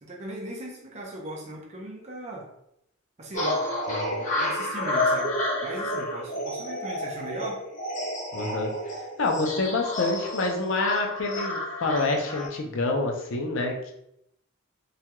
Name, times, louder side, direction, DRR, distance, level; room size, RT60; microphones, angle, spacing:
voice 1, 0.0-2.5 3.2-3.6 4.4-5.3 5.6-7.7, right 1 dB, 35° right, -1 dB, 0.5 m, -38 dB
sound 1, 3.3-12.5, left 1 dB, 40° left, 0.7 m, -30 dB
voice 2, 3.9-4.3 8.3-13.9, left 3 dB, 75° left, 2 dB, 0.5 m, -27 dB
2.3 x 2.2 x 2.9 m, 0.77 s
head